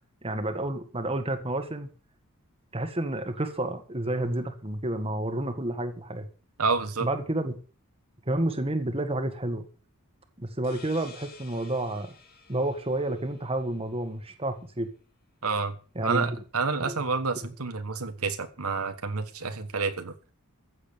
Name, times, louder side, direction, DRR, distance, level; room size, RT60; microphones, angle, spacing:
voice 1, 0.2-1.9 2.7-6.3 7.0-7.6 8.3-9.7 10.4-12.1 12.5-14.9 16.0-16.4 16.8-17.0, right 1 dB, 25° right, 7 dB, 1.8 m, -30 dB
voice 2, 6.6-7.1 15.4-15.7 16.0-20.1, right 4 dB, 75° right, 8 dB, 1.4 m, -29 dB
sound 1, 10.6-14.1, left 5 dB, 45° left, 3.1 m, -52 dB
15.0 x 7.6 x 6.9 m, 0.38 s
head